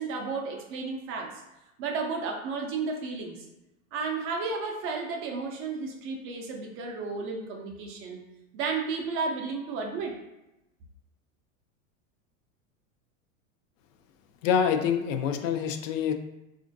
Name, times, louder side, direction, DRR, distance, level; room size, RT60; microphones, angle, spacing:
voice 1, 0.0-1.4 1.8-3.5 3.9-8.2 8.5-10.2, right 4 dB, 35° right, 1 dB, 0.4 m, -33 dB
voice 2, 14.4-16.1, left 7 dB, 70° left, 6 dB, 0.5 m, -26 dB
3.5 x 2.5 x 2.5 m, 0.93 s
supercardioid pair, 120°, 40 cm